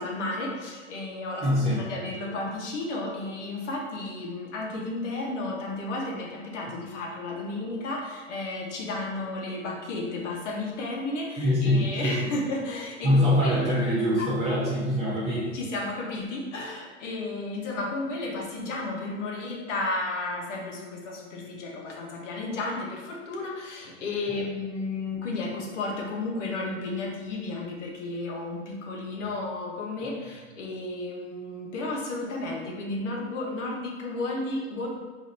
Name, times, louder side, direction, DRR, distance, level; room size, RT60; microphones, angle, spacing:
voice 1, 0.0-13.8 15.5-34.9, left 2 dB, 75° left, -1 dB, 1.1 m, -33 dB
voice 2, 1.4-1.8 11.4-12.3 13.0-15.6 16.6-16.7 24.3-24.4, left 1 dB, 20° right, -8 dB, 0.7 m, -24 dB
3.9 x 2.5 x 4.1 m, 1.5 s
hypercardioid pair, 135°, 36 cm